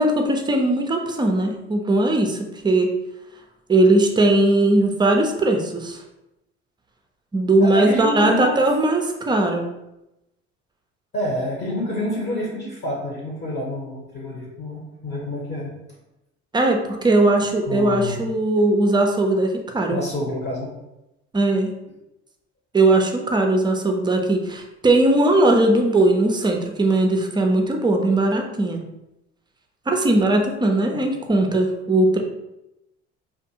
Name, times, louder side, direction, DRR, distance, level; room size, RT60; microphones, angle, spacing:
voice 1, 0.0-2.9 3.7-6.0 7.3-9.6 16.5-20.0 21.3-21.7 22.7-28.8 29.9-32.2, right 2 dB, 15° right, 3 dB, 0.4 m, -19 dB
voice 2, 7.6-8.6 11.1-15.7 17.7-18.2 19.9-20.7 30.9-31.0, left 1 dB, 30° left, -3 dB, 0.9 m, -28 dB
2.5 x 2.4 x 2.8 m, 0.91 s
hypercardioid pair, 70°, 34 cm